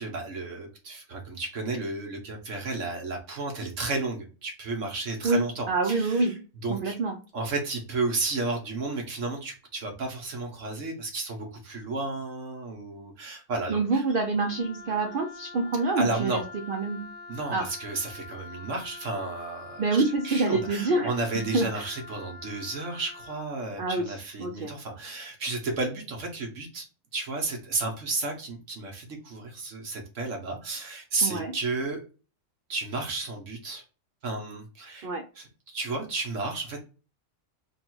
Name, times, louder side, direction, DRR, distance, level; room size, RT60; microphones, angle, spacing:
voice 1, 0.0-6.3 6.6-7.0 7.3-14.0 16.0-16.4 17.3-26.8 27.1-32.0 32.7-33.8 34.2-35.1 35.4-36.9, right 3 dB, 65° right, 2 dB, 1.1 m, -32 dB
voice 2, 5.2-6.4 6.7-7.2 13.7-17.1 17.5-17.7 19.8-21.9 23.8-24.1 24.4-24.7 31.2-31.5 35.0-35.2, right 3 dB, 85° right, 5 dB, 0.4 m, -27 dB
Wind instrument woodwind instrument, 14.3-23.4, left 4 dB, 40° left, 0.9 m, -45 dB
3.4 x 2.3 x 4.4 m, 0.35 s
omnidirectional pair, 1.5 m